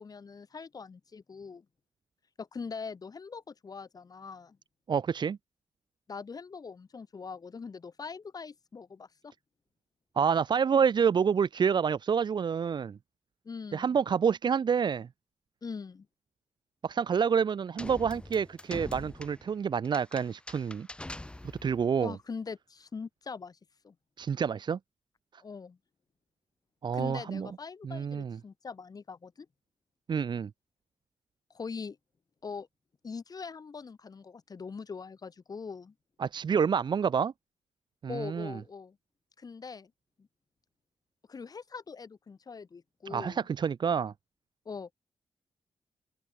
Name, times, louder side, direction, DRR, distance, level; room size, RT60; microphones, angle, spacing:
voice 1, 0.0-1.6 2.4-4.6 6.1-9.3 13.4-14.0 15.6-16.1 22.0-23.6 23.8-23.9 25.4-25.8 26.9-29.5 31.5-32.0 32.4-32.7 33.0-35.9 38.1-39.0 39.4-39.9 40.2-40.3 41.3-43.5 44.6-44.9, left 5 dB, 45° left, 4.8 m, -42 dB
voice 2, 4.9-5.4 10.2-13.0 13.7-15.1 16.8-20.9 21.6-22.1 24.2-24.8 26.8-27.5 27.8-28.4 30.1-30.5 36.2-37.3 38.0-38.5 43.1-44.1, right 6 dB, 60° right, 1.5 m, -28 dB
sound 1, 17.8-21.9, left 1 dB, 10° left, 1.6 m, -44 dB
open air
cardioid pair, 90°, 9 cm